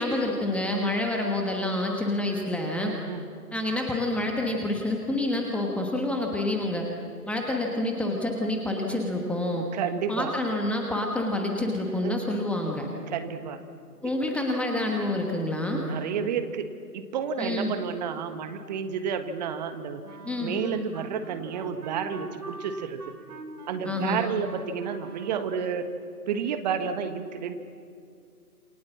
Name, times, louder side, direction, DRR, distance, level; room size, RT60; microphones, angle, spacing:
voice 1, 0.0-2.9 3.5-6.8 7.2-9.7 10.1-12.9 14.0-15.9 17.4-17.7 20.2-20.5 23.8-24.2, left 1 dB, 5° left, 0 dB, 1.2 m, -28 dB
voice 2, 2.8-3.3 9.7-10.4 12.0-12.2 13.1-13.6 14.0-14.2 15.7-20.0 20.4-23.0 23.7-25.9 26.3-27.6, right 7 dB, 25° right, 8 dB, 1.6 m, -31 dB
Wind instrument woodwind instrument, 20.0-25.8, right 2 dB, 70° right, 4.8 m, -44 dB
28.0 x 27.0 x 7.4 m, 2.3 s
figure-of-eight pair, 140°, 47 cm